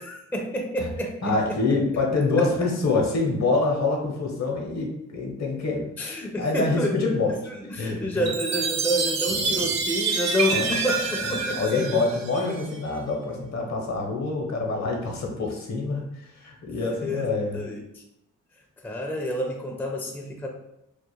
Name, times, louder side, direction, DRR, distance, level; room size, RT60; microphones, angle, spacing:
voice 1, 0.0-1.4 1.7-1.8 2.4-2.5 6.0-6.9 7.3-7.4 7.7-12.0 12.4-12.6 17.0-18.0 18.8-20.5, equal, 5° left, 1 dB, 0.4 m, -29 dB
voice 2, 1.2-5.9 6.4-7.3 7.8-8.3 9.3-9.7 10.5-10.8 11.2-17.6, left 3 dB, 55° left, 0 dB, 0.8 m, -26 dB
Chime, 8.3-12.8, right 4 dB, 55° right, 0.5 m, -27 dB
2.4 x 2.1 x 3.0 m, 0.82 s
cardioid pair, 55°, 32 cm